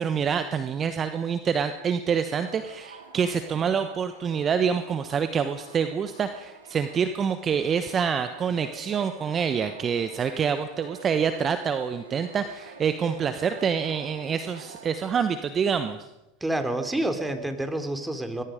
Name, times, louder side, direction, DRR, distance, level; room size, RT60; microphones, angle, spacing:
voice 1, 0.0-16.0, right 7 dB, 30° right, 10 dB, 1.2 m, -26 dB
sound 1, 2.2-15.0, right 4 dB, 90° right, 3.3 m, -47 dB
voice 2, 16.4-18.4, right 1 dB, 10° right, 7 dB, 3.3 m, -28 dB
25.0 x 21.5 x 5.2 m, 1.0 s
hypercardioid pair, 85°, 0 cm